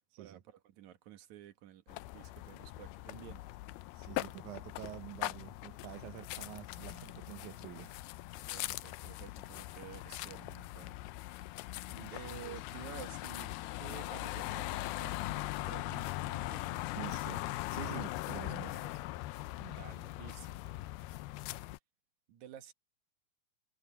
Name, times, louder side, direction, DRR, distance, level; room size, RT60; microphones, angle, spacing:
voice 1, 0.2-3.5 8.5-11.0 11.3-11.5 12.1-17.3 17.9-18.0 18.3-18.9 19.3-20.6 22.3-22.7, right 11 dB, 60° right, 2.3 m, -52 dB
sound 1, 1.9-21.8, left 18 dB, 80° left, 2.4 m, -41 dB
voice 2, 3.9-8.0 11.9-12.1 12.4-12.6 16.9-18.8 19.6-19.8, right 16 dB, 85° right, 1.7 m, -48 dB
omnidirectional pair, 4.6 m